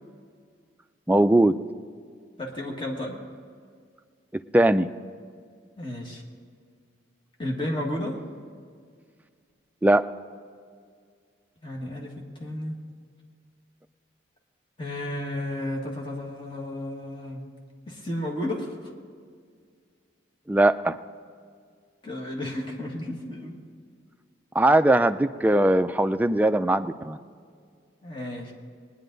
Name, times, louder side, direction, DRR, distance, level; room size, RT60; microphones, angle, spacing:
voice 1, 1.1-1.5 4.5-4.9 9.8-10.0 20.5-21.0 24.6-27.2, right 1 dB, 10° right, 9 dB, 0.3 m, -20 dB
voice 2, 2.4-3.2 5.8-6.2 7.4-8.2 11.6-12.8 14.8-17.4 17.9-18.9 22.0-23.6 28.0-28.5, left 1 dB, 25° left, 0 dB, 1.6 m, -32 dB
20.5 x 10.0 x 3.9 m, 2.1 s
head